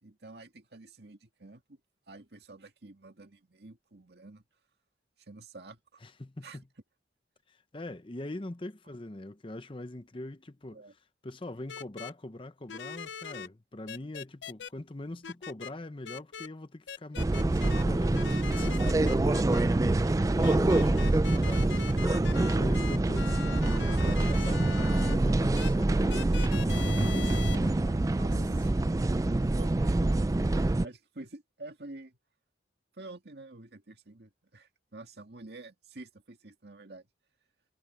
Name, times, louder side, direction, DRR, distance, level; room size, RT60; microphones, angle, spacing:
voice 1, 0.0-1.8 2.1-4.4 5.3-6.0 6.4-6.6 10.7-10.9 28.2-28.7 29.4-30.3 30.8-32.2 32.9-37.1, right 2 dB, 60° right, 2.1 m, -48 dB
voice 2, 6.0-6.6 7.5-10.8 11.2-28.8, left 1 dB, 30° left, 0.8 m, -42 dB
sound 1, 11.7-12.1 12.7-13.5 13.9-14.7 15.2-15.7 16.0-16.5 16.9-17.8 18.1-19.6 20.4-25.1 25.5-25.7 26.1-27.6, left 7 dB, 75° left, 0.6 m, -41 dB
sound 2, 17.2-30.9, right 2 dB, 20° right, 0.3 m, -26 dB
head